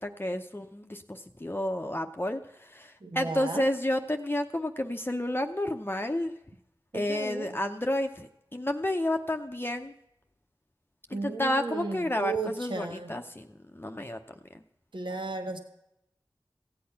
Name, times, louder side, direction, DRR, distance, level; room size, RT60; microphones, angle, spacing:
voice 1, 0.0-6.3 6.9-9.9 11.1-12.3 12.6-13.5 13.7-14.2, left 1 dB, 25° left, 5 dB, 0.7 m, -31 dB
voice 2, 3.0-3.6 6.9-7.6 11.1-13.1 14.9-15.6, right 3 dB, 70° right, 4 dB, 1.5 m, -34 dB
15.5 x 8.5 x 5.8 m, 0.84 s
wide cardioid pair, 45°, 9 cm